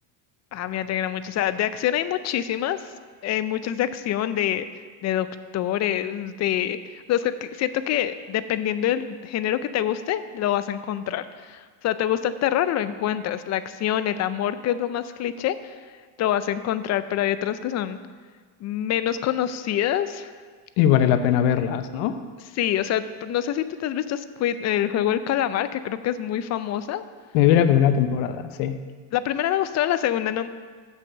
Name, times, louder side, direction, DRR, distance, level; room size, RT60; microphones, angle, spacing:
voice 1, 0.5-2.8 3.2-4.7 5.0-5.3 5.5-15.7 16.2-18.0 18.6-20.3 22.6-27.0 29.1-30.5, left 11 dB, 35° left, 13 dB, 0.4 m, -26 dB
voice 2, 20.8-22.2 27.3-28.8, left 10 dB, 80° left, 10 dB, 0.8 m, -20 dB
7.4 x 6.2 x 6.8 m, 1.5 s
cardioid pair, 120°, 50 cm